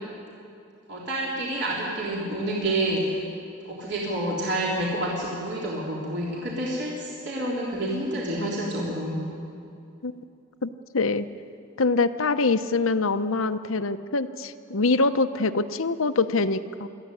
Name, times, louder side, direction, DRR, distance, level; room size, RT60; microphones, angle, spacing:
voice 1, 0.9-3.2 3.6-9.2, right 1 dB, 55° right, -4 dB, 3.7 m, -28 dB
voice 2, 10.9-11.3 11.8-16.9, left 3 dB, 70° left, 11 dB, 0.9 m, -24 dB
24.5 x 14.0 x 9.9 m, 2.5 s
head